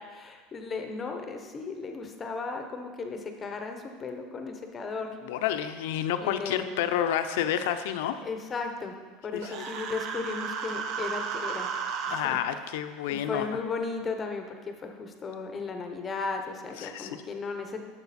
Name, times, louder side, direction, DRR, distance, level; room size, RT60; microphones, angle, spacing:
voice 1, 0.1-5.2 6.2-6.9 8.2-9.0 9.2-11.7 12.1-12.4 13.1-17.8, left 4 dB, 15° left, 5 dB, 0.8 m, -35 dB
voice 2, 5.2-8.2 9.3-9.6 12.1-13.6 16.8-17.2, left 10 dB, 70° left, 9 dB, 0.6 m, -30 dB
Human voice, 9.4-12.2, right 6 dB, 40° right, 0.8 m, -33 dB
11.5 x 7.4 x 4.2 m, 1.5 s
supercardioid pair, 175°, 0 cm